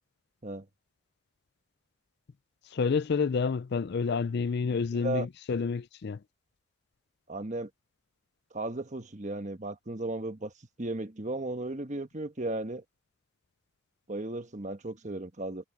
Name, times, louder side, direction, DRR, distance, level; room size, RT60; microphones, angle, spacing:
voice 1, 2.7-6.2, left 5 dB, 50° left, 0.4 m, -29 dB
voice 2, 4.7-5.3 7.3-7.7 8.5-10.5 10.8-12.8 14.1-15.6, right 2 dB, 35° right, 1.3 m, -35 dB
head